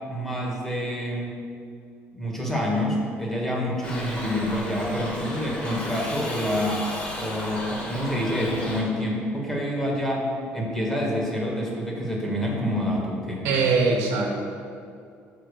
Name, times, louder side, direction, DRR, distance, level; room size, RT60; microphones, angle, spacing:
voice 1, 0.1-1.3 2.1-6.9 7.2-10.3 10.5-13.5, equal, 5° left, -2 dB, 1.3 m, -27 dB
Shout / Livestock farm animals working animals, 3.8-8.8, left 1 dB, 30° left, 1.7 m, -34 dB
voice 2, 13.4-14.4, right 4 dB, 80° right, 0 dB, 1.1 m, -22 dB
5.8 x 5.0 x 6.4 m, 2.4 s
cardioid pair, 150°, 5 cm